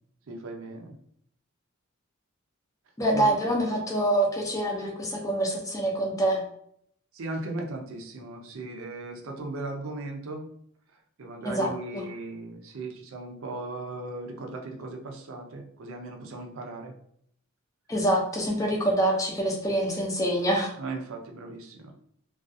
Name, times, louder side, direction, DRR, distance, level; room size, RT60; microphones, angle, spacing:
voice 1, 0.3-0.9 3.1-3.3 7.1-10.4 11.2-16.9 20.8-21.9, right 2 dB, 75° right, 3 dB, 0.5 m, -37 dB
voice 2, 3.0-6.4 11.4-12.0 17.9-20.7, right 1 dB, 15° left, 0 dB, 0.5 m, -26 dB
2.3 x 2.3 x 2.5 m, 0.68 s
head